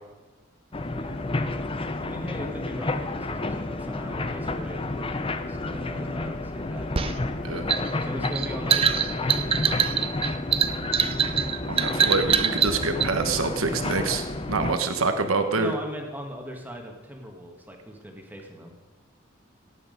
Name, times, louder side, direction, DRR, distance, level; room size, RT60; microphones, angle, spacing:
sound 1, 0.7-14.7, left 2 dB, 25° left, 0.6 m, -31 dB
voice 1, 0.9-1.2 2.0-7.1 8.0-10.1 14.7-14.8 15.5-18.7, equal, 10° right, 2 dB, 1.7 m, -39 dB
sound 2, 7.0-13.1, right 7 dB, 25° right, 0.5 m, -24 dB
voice 2, 11.7-15.7, right 3 dB, 85° right, 7 dB, 1.2 m, -26 dB
17.5 x 8.6 x 5.2 m, 1.2 s
head